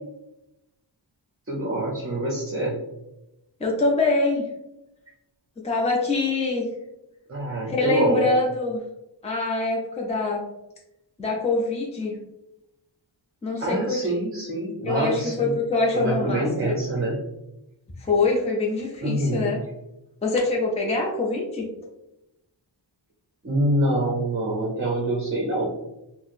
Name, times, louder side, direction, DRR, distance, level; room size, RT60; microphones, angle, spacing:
voice 1, 1.5-2.8 7.3-8.2 13.5-15.6 15.9-17.2 19.0-19.5 23.4-25.7, right 1 dB, 30° right, -3 dB, 0.6 m, -25 dB
voice 2, 3.6-4.4 5.6-6.7 7.7-8.8 9.2-10.5 11.2-12.2 13.4-14.0 14.9-16.7 18.0-19.6 20.2-21.7, left 3 dB, 15° left, -1 dB, 0.5 m, -24 dB
4.2 x 2.0 x 2.5 m, 0.90 s
wide cardioid pair, 105°, 46 cm